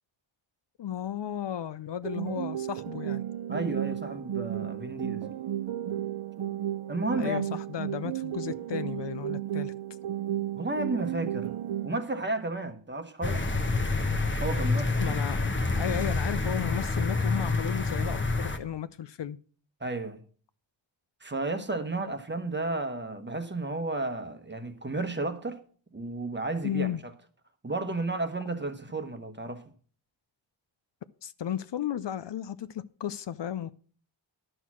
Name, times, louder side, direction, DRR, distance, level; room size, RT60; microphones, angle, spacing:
voice 1, 0.8-3.2 7.2-9.7 15.0-19.4 26.6-27.0 31.2-33.7, left 10 dB, 60° left, 0.6 m, -34 dB
sound 1, 2.0-12.0, right 12 dB, 90° right, 0.7 m, -33 dB
voice 2, 3.5-5.3 6.9-7.6 10.5-11.5 11.8-13.4 14.4-15.2 19.8-20.2 21.2-25.6 25.9-27.1 27.6-29.6, right 2 dB, 25° right, 1.0 m, -32 dB
sound 2, 13.2-18.6, left 3 dB, 25° left, 1.0 m, -28 dB
11.0 x 6.2 x 6.0 m
wide cardioid pair, 120°, 47 cm